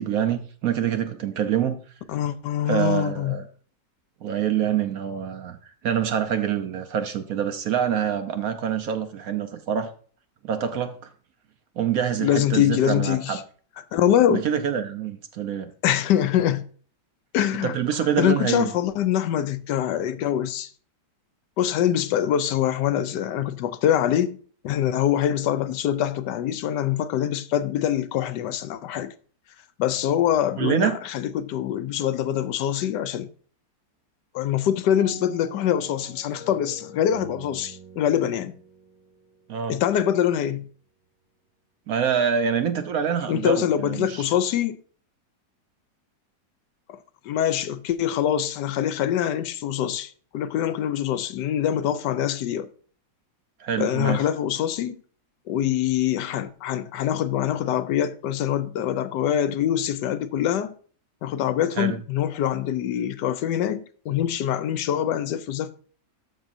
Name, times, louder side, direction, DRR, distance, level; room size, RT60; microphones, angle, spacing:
voice 1, 0.0-1.8 2.6-3.4 4.2-5.6 5.8-9.9 10.4-11.0 11.8-13.4 14.3-15.7 17.6-18.7 30.6-31.0 39.5-39.8 41.9-44.2 53.6-54.2 61.8-62.0, right 8 dB, 65° right, 1.0 m, -25 dB
voice 2, 2.1-3.4 12.2-13.4 13.9-14.4 15.8-16.7 17.3-17.8 18.2-20.7 21.6-24.4 24.6-29.1 29.8-33.3 34.3-38.5 39.7-40.7 43.3-44.8 47.2-52.7 53.8-55.0 55.5-60.7 61.2-65.7, left 10 dB, 80° left, 1.2 m, -24 dB
sound 1, 34.9-39.6, right 3 dB, 45° right, 1.9 m, -44 dB
13.0 x 5.5 x 2.6 m
omnidirectional pair, 1.9 m